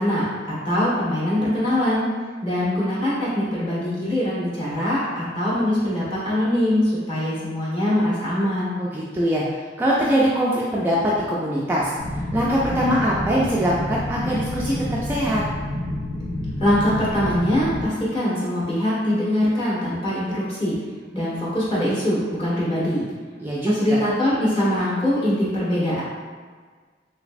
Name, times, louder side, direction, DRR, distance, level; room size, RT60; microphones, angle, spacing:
voice 1, 0.0-2.1 2.4-8.7 16.6-20.8 21.1-23.0 23.6-26.0, left 1 dB, 30° left, -8 dB, 1.1 m, -23 dB
voice 2, 8.8-9.4 9.8-11.9 12.3-15.4 23.4-24.0, equal, 10° right, -6 dB, 0.3 m, -22 dB
sound 1, 12.0-17.9, left 1 dB, 60° left, 0.5 m, -29 dB
3.2 x 3.0 x 2.5 m, 1.5 s
head